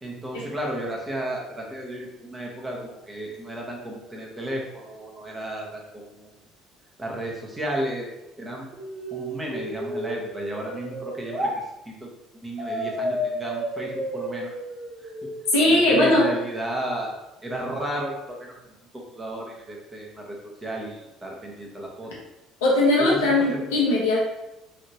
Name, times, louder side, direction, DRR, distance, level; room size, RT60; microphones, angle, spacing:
voice 1, 0.0-6.3 7.0-8.1 8.4-8.7 9.1-11.5 11.8-12.1 12.3-14.5 15.0-15.1 15.7-17.1 17.4-18.5 18.9-22.1 23.0-23.6, right 1 dB, 20° right, -2 dB, 1.1 m, -33 dB
sound 1, 8.7-11.6 12.6-15.6, equal, 45° right, 0.9 m, -32 dB
voice 2, 15.5-16.3 22.6-24.2, left 1 dB, 75° left, -5 dB, 1.0 m, -19 dB
3.2 x 2.8 x 2.8 m, 0.92 s
figure-of-eight pair, 55°, 0 cm